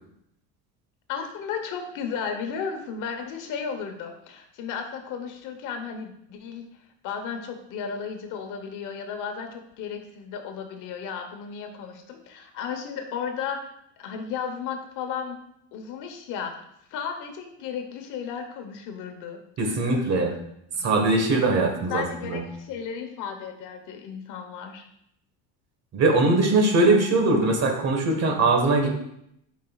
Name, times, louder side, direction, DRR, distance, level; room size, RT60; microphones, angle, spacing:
voice 1, 1.1-6.7 7.0-13.7 14.0-15.4 15.7-16.6 16.9-20.4 20.8-20.9 21.9-24.8, left 6 dB, 60° left, 5 dB, 1.1 m, -34 dB
voice 2, 19.6-20.3 20.8-22.4 25.9-28.9, right 2 dB, 45° right, 3 dB, 1.4 m, -21 dB
9.0 x 5.2 x 2.4 m, 0.75 s
cardioid pair, 135°, 35 cm